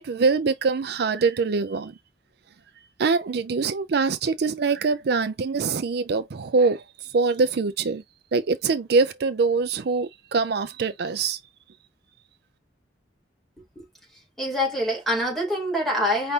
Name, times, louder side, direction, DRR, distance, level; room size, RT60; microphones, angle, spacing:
voice 1, 0.0-1.9 3.0-8.0 8.3-11.4, right 4 dB, 60° right, 0.4 m, -24 dB
voice 2, 14.4-16.3, left 1 dB, ahead, 2.3 m, -25 dB
5.3 x 2.5 x 3.2 m
head